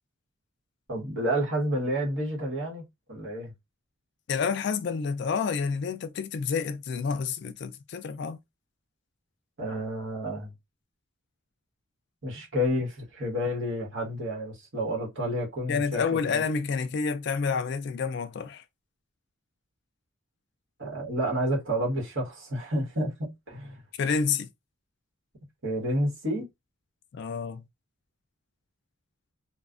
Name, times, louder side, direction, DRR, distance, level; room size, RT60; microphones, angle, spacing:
voice 1, 0.9-3.5 9.6-10.5 12.2-16.4 20.8-23.8 25.6-26.5, equal, 60° right, 1.3 m, -30 dB
voice 2, 4.3-8.4 15.7-18.6 24.0-24.5 27.1-27.6, left 5 dB, 55° left, 0.3 m, -29 dB
3.1 x 2.1 x 2.4 m
head